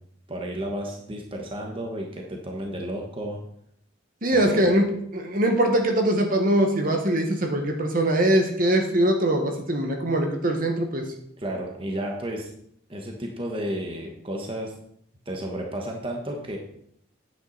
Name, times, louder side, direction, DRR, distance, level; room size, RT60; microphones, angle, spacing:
voice 1, 0.3-3.4 4.3-4.8 11.4-12.5 12.9-14.7 15.2-16.6, right 1 dB, 25° right, 1 dB, 1.3 m, -32 dB
voice 2, 4.2-11.0, right 1 dB, 45° right, 3 dB, 1.4 m, -22 dB
9.7 x 9.0 x 4.1 m, 0.69 s
head